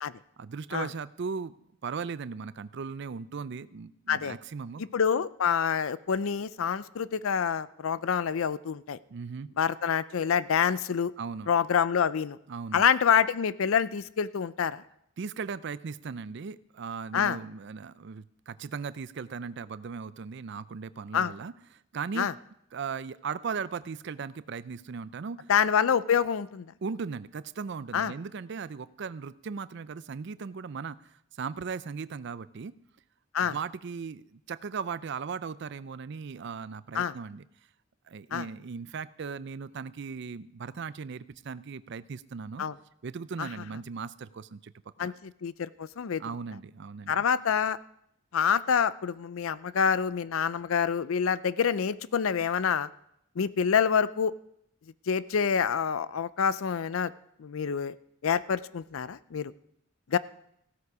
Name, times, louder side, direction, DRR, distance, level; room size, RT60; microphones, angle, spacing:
voice 1, 0.4-1.6 1.8-4.9 9.1-9.5 11.2-11.5 12.5-12.9 15.2-21.5 21.9-22.3 22.7-25.5 26.8-32.8 33.4-37.4 38.1-42.6 43.0-44.7 45.0-45.1 46.2-47.2 60.1-60.2, right 5 dB, 60° right, 16 dB, 0.4 m, -37 dB
voice 2, 4.9-9.0 9.6-11.1 11.5-12.4 12.7-14.8 17.1-17.4 21.1-21.3 22.2-22.3 25.5-26.7 27.9-28.1 33.3-33.6 36.9-37.1 38.3-38.5 42.6-42.7 43.4-43.5 45.0-46.2 47.1-47.8 48.3-52.9 53.4-54.3 55.1-57.1 57.4-58.0 58.2-59.5 60.1-60.2, left 7 dB, 85° left, 17 dB, 0.5 m, -27 dB
15.5 x 13.0 x 4.8 m, 0.75 s
head